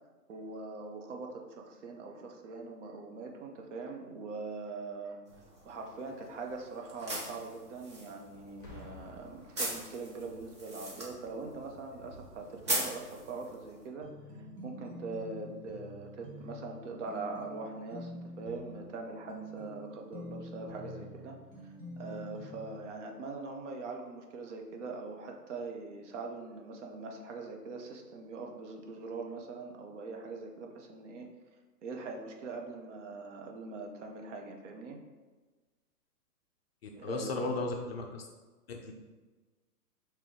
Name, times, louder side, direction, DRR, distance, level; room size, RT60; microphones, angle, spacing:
voice 1, 0.3-5.2 5.6-14.1 14.6-21.4 22.0-31.3 31.8-35.0 37.0-37.6, right 3 dB, 45° right, 2 dB, 0.8 m, -42 dB
sound 1, 5.3-13.9, right 1 dB, 20° right, 0.4 m, -41 dB
Boom, 8.6-10.4 11.2-11.5, left 3 dB, 10° left, 1.4 m, -52 dB
sound 2, 14.0-22.9, equal, 75° right, 1.3 m, -47 dB
voice 2, 36.8-38.2 38.7-38.9, left 3 dB, 40° left, 2 dB, 0.5 m, -35 dB
5.1 x 2.9 x 3.6 m, 1.3 s
hypercardioid pair, 135°, 48 cm